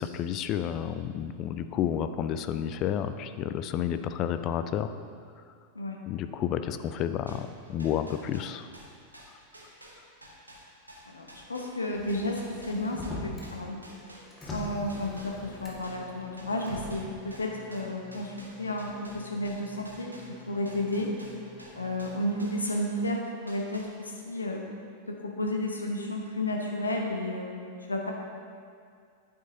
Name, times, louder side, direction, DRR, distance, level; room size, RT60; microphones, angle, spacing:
voice 1, 0.0-5.0 6.1-8.7, left 9 dB, 35° left, 10 dB, 0.4 m, -31 dB
sound 1, 7.3-14.6 14.9-23.1 23.5-24.3, right 1 dB, 85° right, 1.1 m, -51 dB
voice 2, 11.1-13.8 14.5-20.1 20.5-21.1 21.7-24.6 25.1-27.6 27.9-28.1, left 1 dB, 80° left, 1 dB, 0.8 m, -32 dB
Motor vehicle (road), 11.9-13.5 13.9-16.0 16.6-17.1, left 1 dB, 15° left, 1.8 m, -41 dB
sound 2, 15.0-22.5, left 2 dB, 5° right, 1.0 m, -52 dB
9.4 x 8.4 x 2.8 m, 2.2 s
figure-of-eight pair, 90°, 0 cm